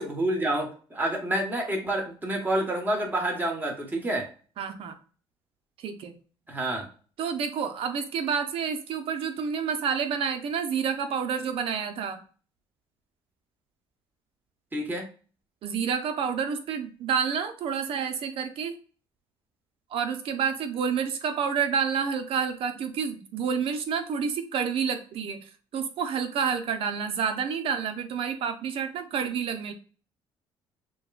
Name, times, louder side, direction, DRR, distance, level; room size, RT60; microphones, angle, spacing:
voice 1, 0.0-4.3 6.5-6.9 14.7-15.1, right 1 dB, 20° right, 1 dB, 1.5 m, -28 dB
voice 2, 4.6-4.9 5.8-6.2 7.2-12.2 15.6-18.8 19.9-29.7, right 6 dB, 65° right, 8 dB, 0.8 m, -29 dB
6.3 x 2.3 x 2.5 m, 0.38 s
cardioid pair, 100°, 10 cm